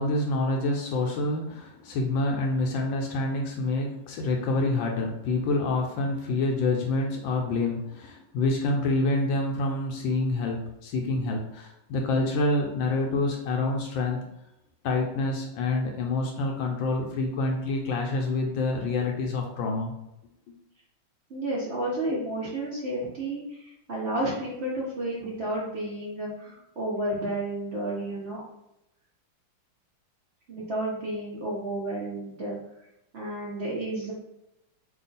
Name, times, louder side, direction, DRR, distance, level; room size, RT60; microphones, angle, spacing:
voice 1, 0.0-14.3 14.8-19.9, left 2 dB, 75° left, 1 dB, 1.2 m, -27 dB
voice 2, 21.3-28.4 30.5-32.6 33.1-34.1, right 1 dB, 70° right, -5 dB, 0.6 m, -31 dB
3.4 x 2.4 x 3.9 m, 0.85 s
omnidirectional pair, 2.3 m